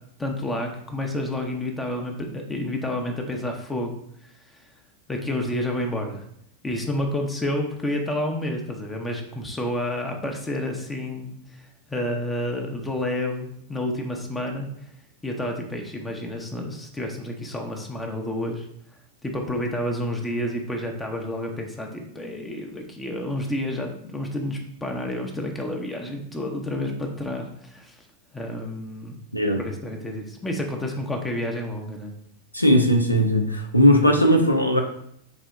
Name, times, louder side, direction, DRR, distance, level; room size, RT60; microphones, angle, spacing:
voice 1, 0.2-3.9 4.2-4.7 5.1-6.2 6.6-14.9 15.2-18.7 19.2-28.1 28.3-29.1 29.6-32.1, left 1 dB, 10° left, 2 dB, 0.6 m, -30 dB
voice 2, 32.5-34.8, equal, 85° left, 3 dB, 0.6 m, -18 dB
4.0 x 2.8 x 3.5 m, 0.70 s
figure-of-eight pair, 90°, 0 cm